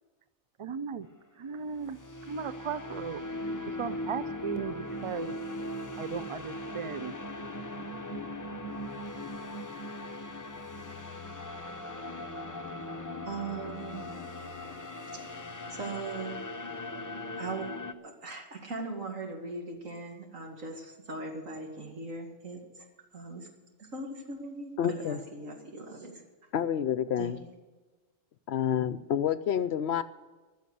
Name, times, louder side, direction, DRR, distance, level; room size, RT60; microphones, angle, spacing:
voice 1, 0.6-1.1 1.4-2.0 2.3-3.2 3.8-5.3 6.0-7.1, right 6 dB, 50° right, 14 dB, 0.3 m, -36 dB
sound 1, 1.7-17.9, left 1 dB, 20° left, 0.5 m, -39 dB
voice 2, 13.2-14.0 15.7-16.4 17.4-17.7 18.0-22.9 23.1-23.5 23.8-26.1 27.2-27.3, right 3 dB, 85° right, 2 dB, 2.5 m, -39 dB
voice 3, 24.8-25.2 26.5-27.4 28.5-30.0, left 9 dB, 65° left, 14 dB, 0.7 m, -28 dB
14.5 x 6.4 x 9.9 m, 1.3 s
omnidirectional pair, 1.3 m